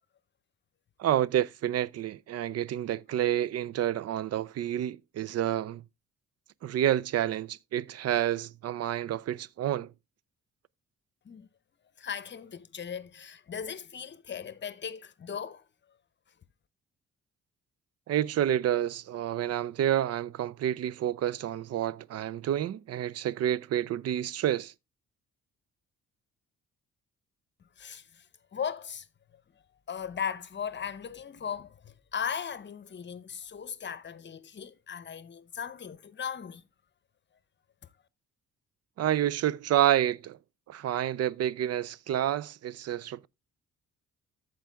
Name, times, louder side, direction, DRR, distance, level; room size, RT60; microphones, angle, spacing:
voice 1, 1.0-5.8 6.6-9.9 18.1-24.7 39.0-40.4 40.7-43.3, right 11 dB, 55° right, 0.5 m, -29 dB
voice 2, 12.0-15.6 27.8-28.3 28.5-29.1 29.9-36.6, left 7 dB, 35° left, 0.8 m, -37 dB
14.0 x 4.7 x 3.4 m
cardioid pair, 90°, 30 cm